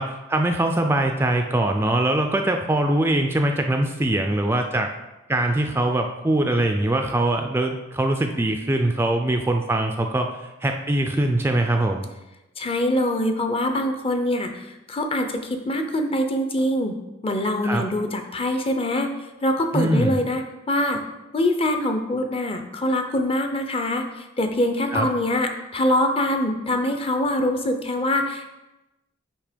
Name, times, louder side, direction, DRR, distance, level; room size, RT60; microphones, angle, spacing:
voice 1, 0.0-4.9 5.3-12.1 17.6-17.8 19.7-20.2 24.9-25.1, right 1 dB, 10° right, 4 dB, 0.3 m, -22 dB
voice 2, 12.6-17.0 17.2-19.1 19.4-20.4 20.7-21.0 21.3-28.5, left 1 dB, 30° left, 5 dB, 0.6 m, -24 dB
8.4 x 2.9 x 5.1 m, 1.0 s
head